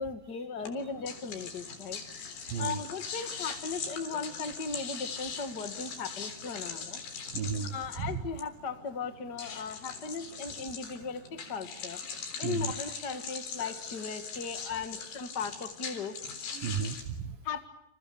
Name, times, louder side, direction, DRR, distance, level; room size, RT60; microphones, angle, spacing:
voice 1, 0.0-2.0 2.6-7.0 7.7-12.0 12.4-16.1 17.4-17.7, left 5 dB, 45° left, 7 dB, 1.3 m, -37 dB
sound 1, 0.6-17.0, left 6 dB, 70° left, 5.7 m, -41 dB
voice 2, 2.4-2.8 7.3-8.2 12.4-12.7 14.7-14.8 16.5-17.4, right 7 dB, 65° right, 9 dB, 2.7 m, -34 dB
30.0 x 27.5 x 7.0 m, 0.81 s
omnidirectional pair, 4.8 m